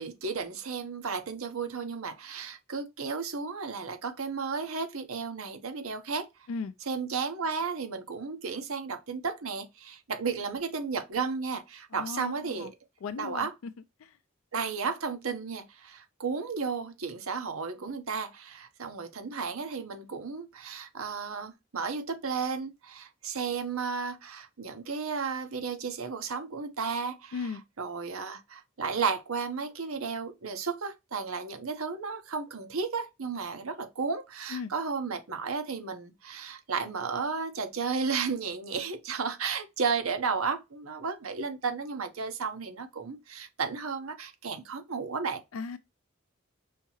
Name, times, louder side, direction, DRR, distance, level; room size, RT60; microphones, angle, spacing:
voice 1, 0.0-6.3 6.9-12.7 13.2-13.5 14.5-27.4 27.8-45.4, right 5 dB, 75° right, 0.9 m, -33 dB
voice 2, 11.9-12.7 13.0-13.7 14.0-14.2 27.3-27.6 34.5-34.7 45.5-45.8, left 5 dB, 70° left, 0.4 m, -36 dB
5.5 x 2.8 x 2.7 m
head